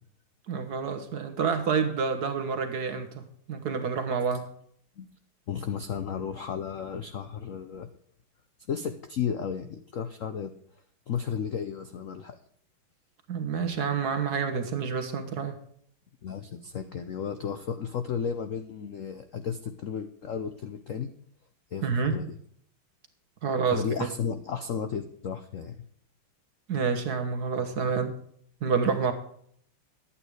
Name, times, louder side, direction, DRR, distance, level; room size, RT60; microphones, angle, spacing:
voice 1, 0.5-3.2 3.5-4.5 13.3-15.6 21.8-22.2 23.4-23.8 26.7-28.1 28.6-29.1, right 5 dB, 55° right, 8 dB, 1.6 m, -28 dB
voice 2, 5.5-7.9 8.7-10.5 11.1-12.4 16.2-21.1 21.7-22.4 23.7-25.7, left 7 dB, 70° left, 9 dB, 0.7 m, -33 dB
11.5 x 8.8 x 4.8 m, 0.65 s
omnidirectional pair, 2.3 m